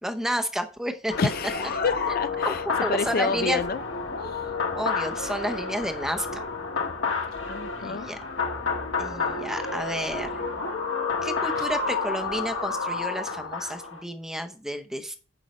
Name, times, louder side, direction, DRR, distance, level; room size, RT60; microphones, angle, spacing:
voice 1, 0.0-1.2 2.4-3.6 4.8-6.4 7.8-8.2 9.0-10.4 11.2-15.2, equal, ahead, 0.7 m, -31 dB
sound 1, 1.1-14.0, left 4 dB, 65° left, 1.5 m, -30 dB
voice 2, 1.2-2.6 2.9-3.8 4.2-4.4 7.5-8.1 11.6-11.7, left 5 dB, 45° left, 0.4 m, -29 dB
9.2 x 5.5 x 4.3 m
head